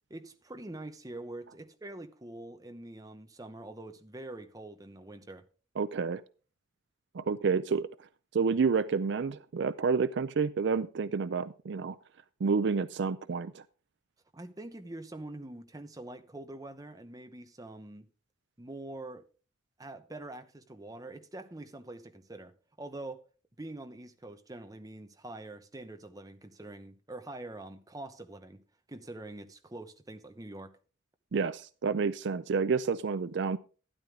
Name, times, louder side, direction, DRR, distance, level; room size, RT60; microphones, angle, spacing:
voice 1, 0.1-5.4 14.3-18.1 18.6-19.2 19.8-23.2 23.6-28.6 28.9-30.8, right 2 dB, 20° right, 0.9 m, -45 dB
voice 2, 5.8-6.2 7.1-7.9 8.3-12.0 12.4-13.6 31.3-33.6, right 5 dB, 60° right, 0.4 m, -29 dB
12.5 x 10.5 x 3.7 m
head